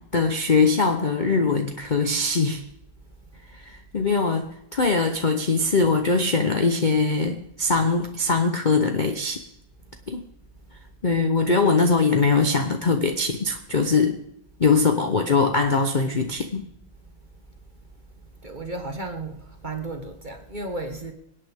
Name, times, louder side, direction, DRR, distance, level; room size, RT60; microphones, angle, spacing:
voice 1, 0.0-2.6 3.7-9.5 10.1-10.2 11.0-14.2 14.6-16.7, left 4 dB, 55° left, 0.5 m, -22 dB
voice 2, 18.4-21.1, right 2 dB, 30° right, 1.1 m, -34 dB
25.0 x 8.8 x 3.5 m
omnidirectional pair, 2.1 m